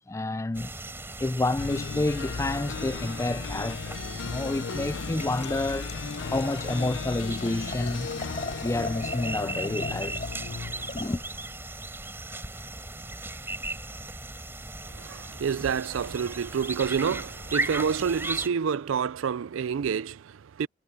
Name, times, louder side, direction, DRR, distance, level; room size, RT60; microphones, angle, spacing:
voice 1, 0.1-0.7 1.2-4.0 4.2-5.9 6.2-8.1 8.6-10.3 10.9-11.2, left 2 dB, 15° left, 0.3 m, -29 dB
sound 1, 0.5-18.5, right 2 dB, 10° right, 4.4 m, -37 dB
sound 2, 1.6-11.4, left 5 dB, 65° left, 0.5 m, -36 dB
Liquid, 4.7-11.5, left 3 dB, 35° left, 3.6 m, -41 dB
voice 2, 14.9-20.7, right 6 dB, 80° right, 0.4 m, -28 dB
head